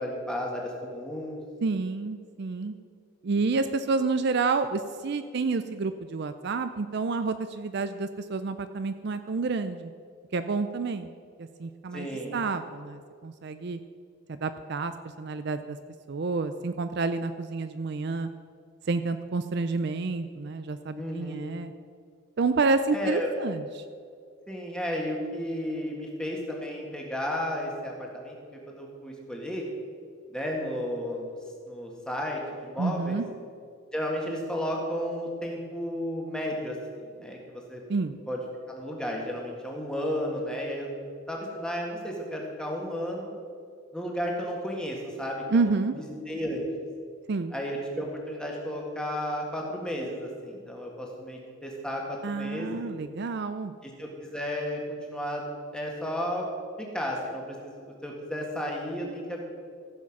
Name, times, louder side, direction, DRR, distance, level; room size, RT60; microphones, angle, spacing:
voice 1, 0.0-1.4 11.9-12.4 20.9-21.4 22.9-23.3 24.5-28.3 28.7-29.6 30.3-31.4 31.7-33.2 33.9-37.8 38.3-38.4 38.7-40.9 41.3-43.3 43.9-45.6 46.3-46.7 47.5-52.8 53.8-54.8 55.1-55.4 55.7-56.5 56.8-59.4, equal, 5° left, -1 dB, 1.8 m, -33 dB
voice 2, 1.6-2.8 3.2-9.9 10.3-11.1 11.4-13.8 14.3-14.9 15.2-15.8 16.1-18.3 18.9-21.7 22.4-23.8 32.8-33.2 37.9-38.2 45.5-45.9 47.3-47.5 52.2-53.7, right 4 dB, 55° right, 10 dB, 0.4 m, -29 dB
15.0 x 7.2 x 6.0 m, 2.2 s
head